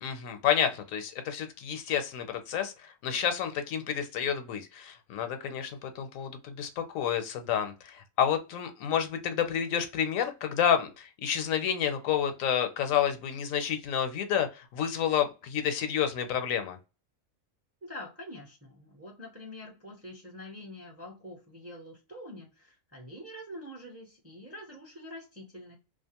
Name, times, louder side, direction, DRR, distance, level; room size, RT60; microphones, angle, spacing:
voice 1, 0.0-16.8, left 9 dB, 85° left, 1.0 m, -30 dB
voice 2, 17.8-25.8, left 1 dB, 20° right, 0.4 m, -45 dB
2.4 x 2.4 x 2.8 m
omnidirectional pair, 1.4 m